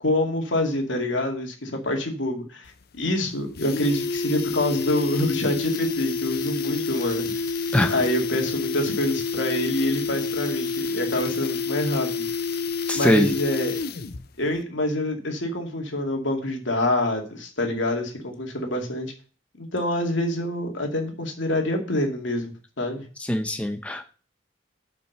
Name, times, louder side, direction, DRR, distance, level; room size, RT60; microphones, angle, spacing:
voice 1, 0.0-2.7 3.0-7.3 7.9-12.3 12.9-13.7 14.4-19.1 19.6-23.0, left 1 dB, 70° left, 3 dB, 2.4 m, -26 dB
sound 1, 2.7-2.8 3.0-3.1 3.4-14.3 14.5-14.6, left 4 dB, 55° left, 0.6 m, -28 dB
voice 2, 12.9-13.3 23.2-24.0, left 1 dB, 5° left, 5 dB, 0.7 m, -22 dB
7.8 x 5.8 x 6.6 m, 0.37 s
head